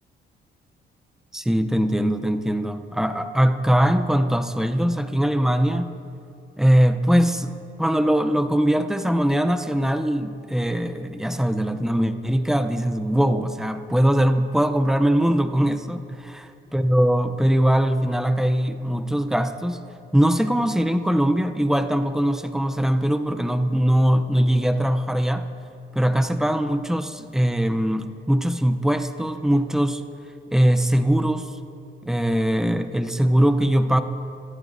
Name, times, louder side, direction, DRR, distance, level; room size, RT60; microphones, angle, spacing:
voice 1, 1.3-5.9 6.6-16.3 16.7-19.8 20.1-25.5 25.9-30.0 30.5-31.5 32.0-34.0, equal, ahead, 8 dB, 0.6 m, -21 dB
24.0 x 10.5 x 2.7 m, 2.7 s
cardioid pair, 90°, 20 cm